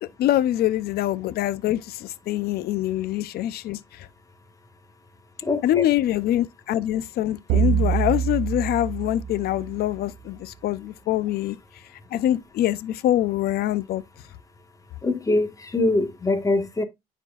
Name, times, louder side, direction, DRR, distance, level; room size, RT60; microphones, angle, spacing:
voice 1, 0.0-4.1 5.6-11.6 12.1-14.0, left 13 dB, 65° left, 0.6 m, -24 dB
voice 2, 5.4-5.8 15.0-16.8, left 2 dB, 20° left, 1.6 m, -23 dB
sound 1, 7.5-10.0, right 9 dB, 90° right, 0.6 m, -25 dB
10.0 x 4.4 x 2.4 m
cardioid pair, 110°, 17 cm